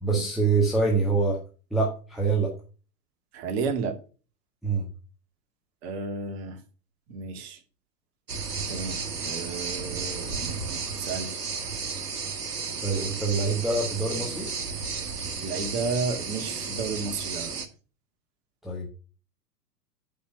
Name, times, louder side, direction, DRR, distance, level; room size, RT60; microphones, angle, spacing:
voice 1, 0.0-1.4 1.7-2.5 4.6-4.9 12.8-14.5 18.6-18.9, right 3 dB, ahead, -4 dB, 1.6 m, -25 dB
voice 2, 3.3-3.9 5.8-6.6 7.1-7.6 8.7-11.4 15.4-17.6, right 4 dB, 40° right, 6 dB, 2.1 m, -32 dB
sound 1, 8.3-17.7, right 5 dB, 75° right, 1.5 m, -33 dB
8.5 x 5.7 x 5.7 m, 0.36 s
figure-of-eight pair, 100°, 47 cm